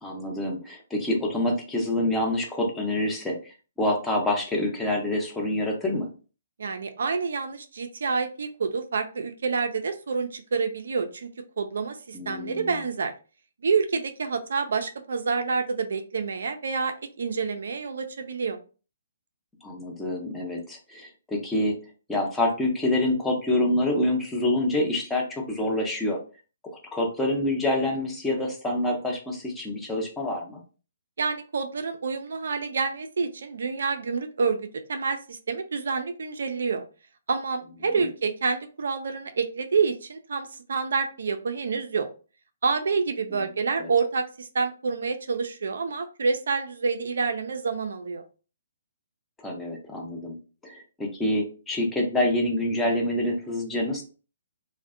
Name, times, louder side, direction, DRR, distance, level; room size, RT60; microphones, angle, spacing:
voice 1, 0.0-6.1 12.1-12.7 19.6-21.8 22.1-26.2 26.9-30.6 43.3-43.5 43.8-43.9 49.4-50.4 50.6-54.0, left 1 dB, 10° left, 0 dB, 0.6 m, -27 dB
voice 2, 6.6-11.3 11.6-13.1 13.6-18.6 31.2-36.8 37.3-42.1 42.6-48.2, right 5 dB, 70° right, 7 dB, 0.3 m, -28 dB
2.5 x 2.1 x 2.4 m, 0.36 s
hypercardioid pair, 140°, 0 cm